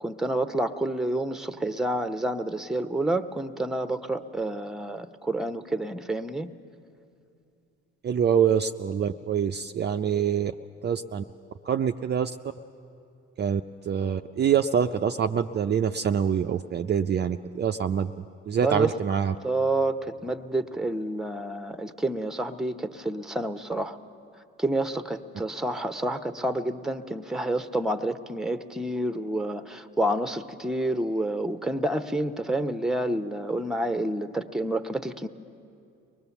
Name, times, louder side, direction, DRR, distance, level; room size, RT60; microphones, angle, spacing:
voice 1, 0.0-6.5 18.6-18.9 19.4-24.0 24.6-35.3, right 1 dB, ahead, 10 dB, 0.9 m, -29 dB
voice 2, 8.0-10.5 10.8-11.2 11.6-12.3 13.4-18.1 18.5-19.4, right 8 dB, 35° right, 5 dB, 0.5 m, -25 dB
23.5 x 19.5 x 7.1 m, 2.6 s
supercardioid pair, 75°, 30 cm